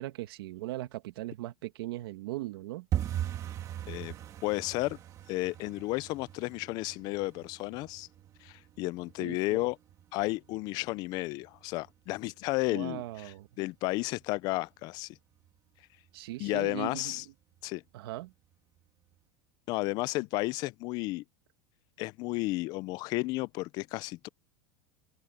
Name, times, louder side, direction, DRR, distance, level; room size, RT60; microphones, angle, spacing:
voice 1, 0.0-2.9 9.2-9.6 12.7-13.5 16.1-17.2 17.9-18.3, right 17 dB, 80° right, 2.0 m, -39 dB
sound 1, 2.9-13.6 13.9-14.6 14.8-15.1 15.4-15.8 16.1-16.2 16.7-17.2 17.6-17.7 18.2-18.3, right 11 dB, 25° right, 2.3 m, -40 dB
voice 2, 4.4-5.0 5.3-8.1 8.4-9.8 10.1-15.2 16.4-17.2 17.6-17.8 19.7-21.2 22.0-24.3, left 21 dB, 35° left, 0.3 m, -33 dB
supercardioid pair, 175°, 12 cm